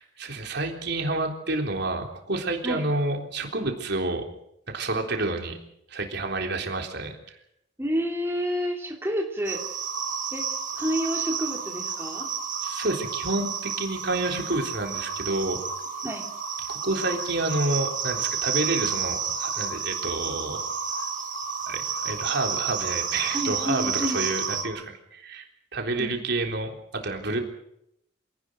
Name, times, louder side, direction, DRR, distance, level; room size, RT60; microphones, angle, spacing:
voice 1, 0.0-4.2 4.7-5.6 5.9-7.4 12.6-15.6 16.7-20.7 21.7-25.5 25.7-27.4, right 2 dB, 60° right, 3 dB, 3.7 m, -29 dB
voice 2, 7.8-9.6 10.3-10.5 10.7-12.3 16.0-16.3 23.3-24.2 26.0-26.1, equal, 10° right, 0 dB, 3.1 m, -29 dB
sound 1, 9.4-24.6, right 6 dB, 40° right, 2.8 m, -31 dB
27.0 x 18.5 x 6.3 m, 0.78 s
head